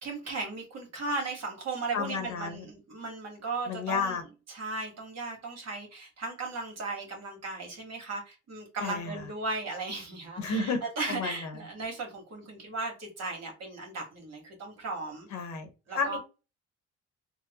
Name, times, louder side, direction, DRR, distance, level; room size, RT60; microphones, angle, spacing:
voice 1, 0.0-4.2 4.5-15.3 15.9-16.2, right 3 dB, 55° right, 1 dB, 1.6 m, -36 dB
voice 2, 1.9-2.7 3.7-4.2 8.8-9.2 10.4-10.8 11.1-11.5 15.3-16.2, left 4 dB, 65° left, 6 dB, 1.0 m, -32 dB
3.7 x 2.2 x 2.9 m, 0.31 s
cardioid pair, 90°, 30 cm